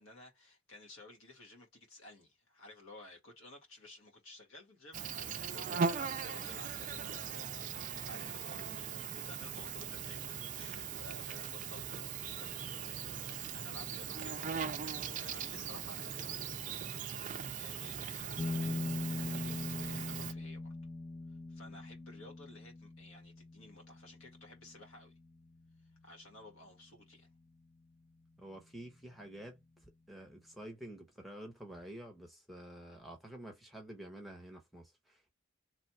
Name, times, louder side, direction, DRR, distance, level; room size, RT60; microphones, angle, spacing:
voice 1, 0.0-14.6 15.0-16.9 17.2-18.9 19.2-20.8 21.5-25.1 26.0-27.3 32.9-33.0, left 1 dB, 80° left, 1.8 m, -55 dB
Insect, 4.9-20.3, right 7 dB, 35° right, 0.4 m, -40 dB
sound 1, 18.4-27.4, left 2 dB, 25° left, 0.4 m, -42 dB
voice 2, 28.4-35.3, right 1 dB, ahead, 0.8 m, -49 dB
3.2 x 2.4 x 4.3 m
head